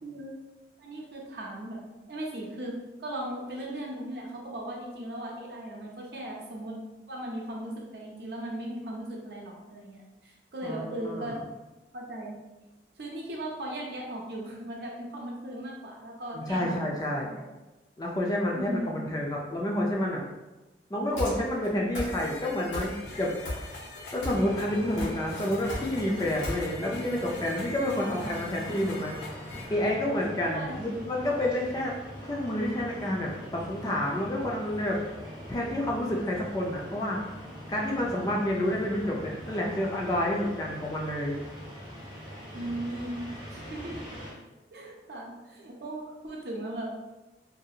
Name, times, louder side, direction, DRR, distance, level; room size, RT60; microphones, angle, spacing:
voice 1, 0.0-0.4 0.8-1.8 2.1-6.7 7.1-11.4 11.9-12.4 13.0-17.5 18.5-19.0 28.0-28.3 30.5-31.1 42.5-44.0 44.7-46.9, right 1 dB, 65° right, -2 dB, 0.6 m, -38 dB
voice 2, 10.6-11.4 16.3-17.3 18.0-20.2 20.9-23.7 24.1-29.4 29.7-31.9 32.2-35.0 35.5-37.2 37.7-41.4, left 1 dB, 20° left, -2 dB, 0.3 m, -29 dB
sound 1, 21.2-21.7 21.9-22.4 22.7-23.2 23.4-24.5 24.7-26.5, left 1 dB, 90° left, 1.1 m, -34 dB
sound 2, 22.1-29.7, left 2 dB, 70° left, 0.6 m, -44 dB
sound 3, 24.5-44.3, equal, 25° right, 0.6 m, -43 dB
2.6 x 2.3 x 2.7 m, 1.1 s
head